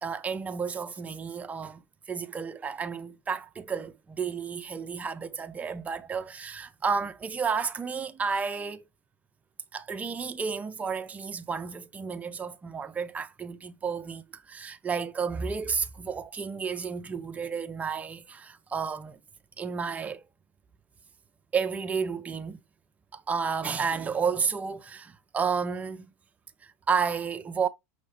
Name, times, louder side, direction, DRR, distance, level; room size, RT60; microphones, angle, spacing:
voice 1, 0.0-8.8 9.7-19.2 19.6-20.2 21.5-22.6 23.1-26.1 26.6-27.7, right 5 dB, 15° right, 0.5 m, -32 dB
5.6 x 3.1 x 2.5 m
supercardioid pair, 115°, 8 cm